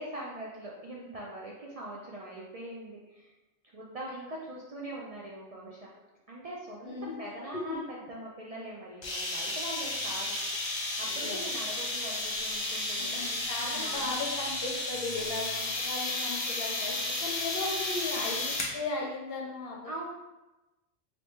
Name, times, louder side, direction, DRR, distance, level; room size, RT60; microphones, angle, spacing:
voice 1, 0.0-3.3 3.7-5.9 6.3-10.4 11.0-14.3 19.8-20.0, right 1 dB, 65° right, -5 dB, 0.3 m, -42 dB
voice 2, 6.8-7.1 7.7-7.8 11.0-11.4 13.0-16.9 17.2-20.0, left 3 dB, 60° left, -1 dB, 0.8 m, -36 dB
sound 1, 9.0-18.8, left 2 dB, 45° left, 0.3 m, -33 dB
3.3 x 2.6 x 3.0 m, 1.0 s
omnidirectional pair, 1.2 m